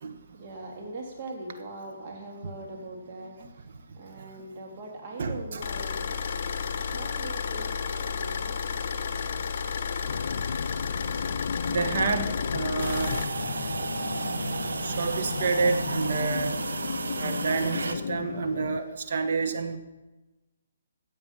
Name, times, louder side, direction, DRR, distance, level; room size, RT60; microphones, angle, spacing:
voice 1, 0.3-6.3 6.9-8.5, right 2 dB, 40° right, -1 dB, 2.4 m, -41 dB
voice 2, 5.2-5.6 11.7-13.1 14.8-16.6 17.2-19.8, right 4 dB, 55° right, 6 dB, 1.5 m, -29 dB
sound 1, 5.6-13.2, left 6 dB, 50° left, 1.0 m, -32 dB
sound 2, 10.1-18.8, left 6 dB, 65° left, 0.5 m, -34 dB
sound 3, 12.8-17.9, right 3 dB, 80° right, 1.0 m, -33 dB
15.0 x 7.8 x 5.7 m, 1.1 s
hypercardioid pair, 150°, 0 cm